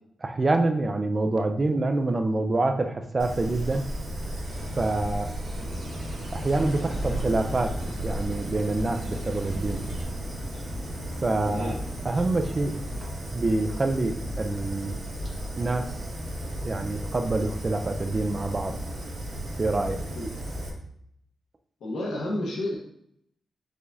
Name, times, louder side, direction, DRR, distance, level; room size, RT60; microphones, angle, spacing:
voice 1, 0.2-3.8 4.8-5.3 6.3-7.7 8.0-9.8 11.2-11.7 12.0-12.7 13.3-15.0 15.6-15.9 16.6-18.7 19.6-20.0, right 2 dB, 25° right, 7 dB, 0.3 m, -26 dB
Fire, 3.2-20.7, equal, 40° right, 1.0 m, -34 dB
sound 1, 4.4-10.0, right 1 dB, 70° right, 1.4 m, -38 dB
sound 2, 5.6-13.1, left 2 dB, 30° left, 0.6 m, -45 dB
voice 2, 11.4-11.8 20.1-20.3 21.8-22.7, left 1 dB, 80° left, -3 dB, 1.1 m, -31 dB
4.9 x 2.6 x 3.4 m, 0.72 s
wide cardioid pair, 170°, 0 cm